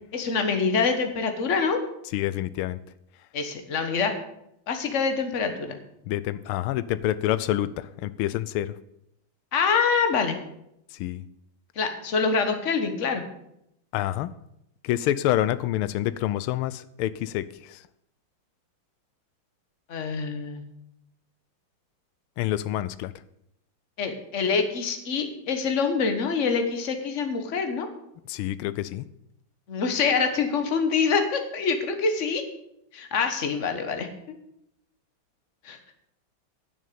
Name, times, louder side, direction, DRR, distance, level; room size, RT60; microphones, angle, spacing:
voice 1, 0.1-1.8 3.3-4.1 4.7-5.8 9.5-10.4 11.8-13.2 19.9-20.6 24.0-27.9 29.7-32.4 32.9-34.1 35.6-35.8, left 5 dB, 40° left, 6 dB, 1.5 m, -25 dB
voice 2, 2.1-2.8 6.1-8.7 11.0-11.2 13.9-14.3 14.8-17.8 22.4-23.1 28.3-29.0, left 13 dB, 90° left, 16 dB, 1.5 m, -27 dB
10.5 x 6.4 x 8.5 m, 0.79 s
omnidirectional pair, 2.3 m